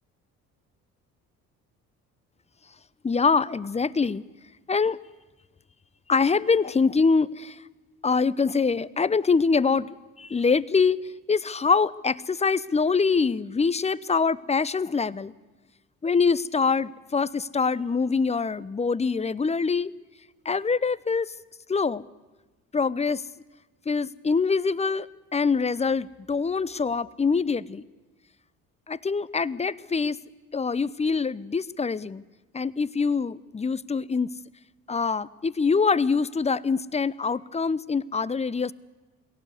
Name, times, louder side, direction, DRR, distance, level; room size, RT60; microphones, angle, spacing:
voice 1, 3.0-4.2 4.7-5.0 6.1-7.6 8.0-15.3 16.0-19.9 20.4-21.3 21.7-22.1 22.7-23.2 23.9-27.9 28.9-30.2 30.5-32.2 32.5-34.3 34.9-38.7, left 5 dB, 15° left, 19 dB, 0.7 m, -24 dB
22.0 x 17.0 x 8.2 m, 1.2 s
hypercardioid pair, 60°, 40 cm